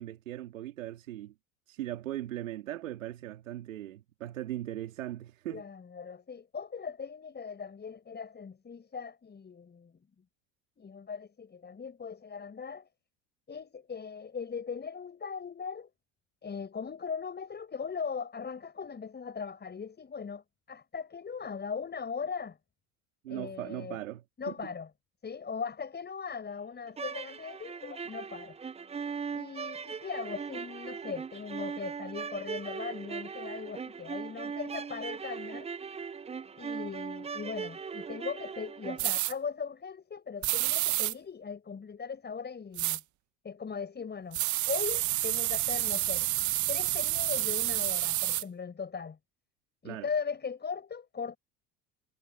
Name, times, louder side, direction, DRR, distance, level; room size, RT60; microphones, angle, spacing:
voice 1, 0.0-1.3 1.7-5.7 23.2-24.7 49.8-50.1, right 13 dB, 90° right, 3.5 m, -39 dB
voice 2, 5.5-10.0 10.8-12.9 13.5-15.9 16.4-22.6 23.3-24.0 24.4-24.9 25.2-28.6 29.3-35.7 36.6-43.0 43.4-46.3 46.7-49.2 49.8-51.4, left 6 dB, 25° left, 7.3 m, -39 dB
sound 1, 26.9-39.2, right 6 dB, 15° right, 0.7 m, -39 dB
sound 2, 39.0-39.3 40.4-41.1 42.8-43.0 44.3-48.4, right 16 dB, 50° right, 1.2 m, -29 dB
hypercardioid pair, 85°, 38 cm